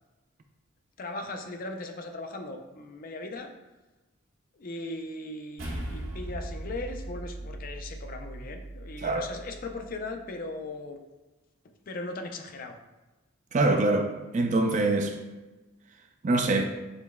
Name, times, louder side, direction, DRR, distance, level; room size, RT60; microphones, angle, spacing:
voice 1, 1.0-3.5 4.6-11.0 11.9-12.7, left 2 dB, 40° left, 5 dB, 0.4 m, -38 dB
sound 1, 5.6-10.1, right 1 dB, 80° right, 1.1 m, -39 dB
voice 2, 13.5-15.2 16.2-16.6, right 2 dB, 35° right, 5 dB, 0.3 m, -24 dB
6.6 x 3.0 x 2.2 m, 1.1 s
head